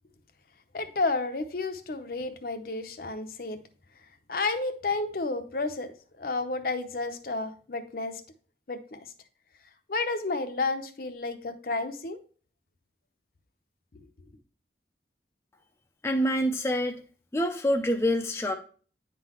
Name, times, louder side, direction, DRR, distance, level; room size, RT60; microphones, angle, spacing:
voice 1, 0.7-3.6 4.3-8.2 8.7-9.0 9.9-12.2, left 3 dB, 55° left, 7 dB, 0.6 m, -31 dB
voice 2, 16.0-17.0 17.3-18.5, equal, 15° left, 3 dB, 0.4 m, -26 dB
9.7 x 3.8 x 2.9 m, 0.41 s
head